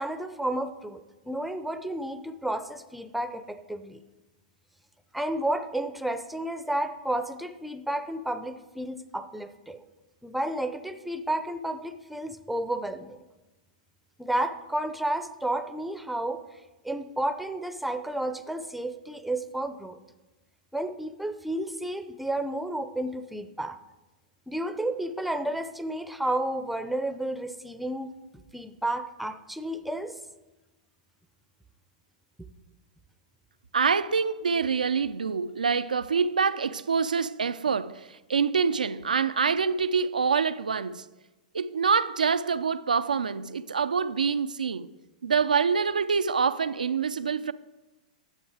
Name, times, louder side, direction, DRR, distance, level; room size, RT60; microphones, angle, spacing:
voice 1, 0.0-4.0 5.1-9.8 10.2-13.2 14.2-16.4 16.8-20.0 20.7-23.8 24.5-30.1, right 1 dB, ahead, 0.6 m, -31 dB
voice 2, 33.7-41.1 41.5-44.9 45.2-47.5, right 5 dB, 90° right, 0.4 m, -26 dB
10.5 x 7.6 x 4.8 m
hypercardioid pair, 110°, 4 cm